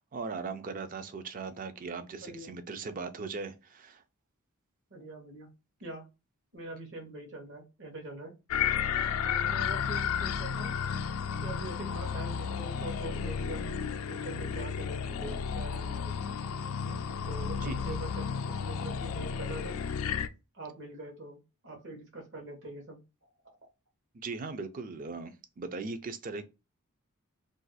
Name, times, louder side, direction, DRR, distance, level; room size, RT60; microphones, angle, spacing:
voice 1, 0.0-4.0 9.0-9.2 17.6-17.8 24.1-26.5, right 4 dB, 40° right, 0.4 m, -39 dB
voice 2, 2.2-2.5 4.9-5.5 5.8-6.1 6.5-8.3 9.2-10.7 11.4-13.7 14.0-16.2 17.2-19.8 20.5-23.0, right 2 dB, 60° right, 0.9 m, -43 dB
sound 1, 8.5-20.3, left 7 dB, 80° left, 0.4 m, -33 dB
2.5 x 2.3 x 3.9 m
head